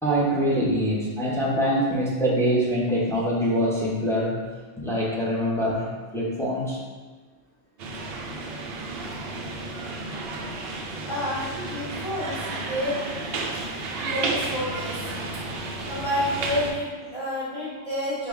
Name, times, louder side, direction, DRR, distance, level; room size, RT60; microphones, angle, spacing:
voice 1, 0.0-4.4 4.8-6.8, equal, 5° left, -6 dB, 0.6 m, -24 dB
sound 1, 7.8-16.7, right 2 dB, 65° right, 0.7 m, -32 dB
voice 2, 11.0-12.3 12.6-13.0 14.0-15.3 15.9-18.3, equal, 40° left, -12 dB, 1.7 m, -29 dB
5.2 x 2.1 x 3.5 m, 1.4 s
omnidirectional pair, 1.2 m